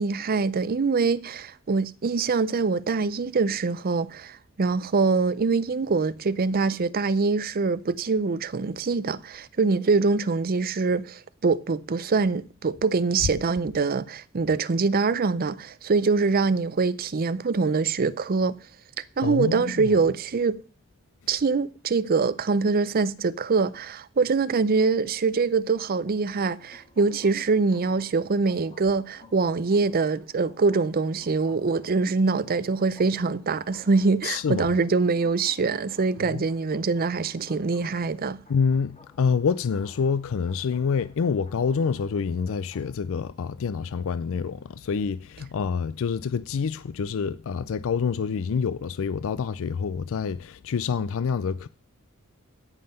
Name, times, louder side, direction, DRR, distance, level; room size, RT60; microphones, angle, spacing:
voice 1, 0.0-18.6 19.0-20.6 21.3-38.4, right 4 dB, 45° right, 0.5 m, -24 dB
voice 2, 19.2-20.0 34.2-34.7 36.3-36.4 38.5-51.7, left 6 dB, 65° left, 0.4 m, -27 dB
sound 1, 26.0-42.9, left 2 dB, 30° left, 2.2 m, -54 dB
16.0 x 5.6 x 5.5 m
head